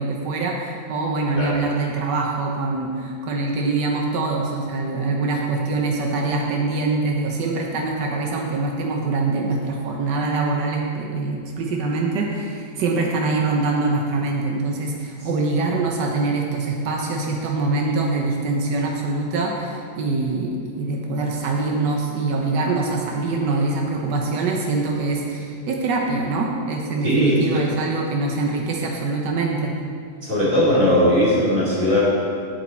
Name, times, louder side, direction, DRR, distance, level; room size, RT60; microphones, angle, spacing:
voice 1, 0.0-29.7, right 3 dB, 85° right, 0 dB, 1.5 m, -24 dB
voice 2, 27.0-27.4 30.2-32.0, left 1 dB, 30° right, -7 dB, 2.5 m, -18 dB
8.2 x 7.9 x 4.3 m, 2.4 s
omnidirectional pair, 1.8 m